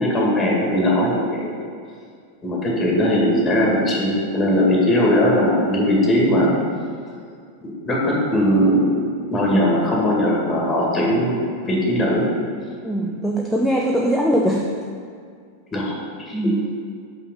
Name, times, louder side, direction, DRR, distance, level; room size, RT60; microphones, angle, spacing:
voice 1, 0.0-1.5 2.4-6.6 7.6-8.9 9.3-11.4 11.7-12.3 15.7-15.9 16.3-16.5, equal, 20° left, -3 dB, 2.0 m, -19 dB
voice 2, 12.8-14.7 16.3-16.6, right 1 dB, 5° left, -1 dB, 0.5 m, -21 dB
5.6 x 5.6 x 5.6 m, 2.2 s
figure-of-eight pair, 90°, 0 cm